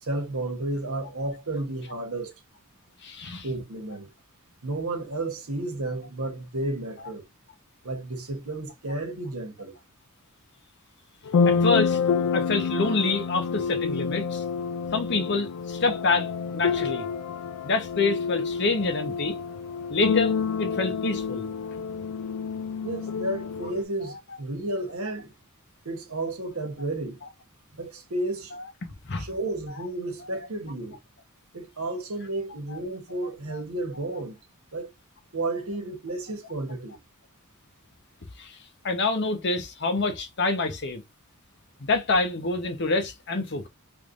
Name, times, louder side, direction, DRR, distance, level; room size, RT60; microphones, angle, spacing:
voice 1, 0.0-2.3 3.4-4.1 4.6-7.2 7.8-9.7 22.8-25.3 25.8-27.2 27.8-28.5 29.2-31.0 31.5-34.4 34.7-34.9 35.3-37.0, right 2 dB, 70° right, 1.1 m, -32 dB
voice 2, 3.0-3.5 11.4-12.0 12.3-14.4 14.9-17.1 17.6-19.4 19.9-20.3 20.6-21.5 28.5-28.6 29.1-29.2 32.7-32.8 33.5-33.6 38.4-38.6 38.8-41.0 41.8-43.7, left 3 dB, 50° left, 0.8 m, -26 dB
sound 1, 11.2-23.8, left 5 dB, 80° left, 0.4 m, -28 dB
3.3 x 3.2 x 2.5 m
head